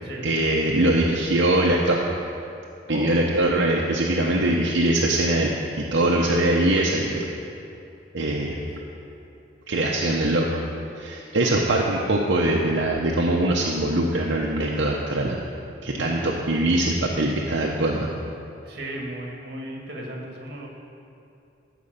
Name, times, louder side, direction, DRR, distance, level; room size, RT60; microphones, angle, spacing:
voice 1, 0.2-2.0 2.9-7.3 8.1-8.6 9.7-10.5 10.9-15.4 15.8-18.1, right 1 dB, 75° right, -2 dB, 0.9 m, -22 dB
voice 2, 11.4-11.8 12.2-12.3 15.9-16.4 18.6-20.7, right 1 dB, 55° right, -1 dB, 1.9 m, -36 dB
14.0 x 5.2 x 6.7 m, 2.7 s
head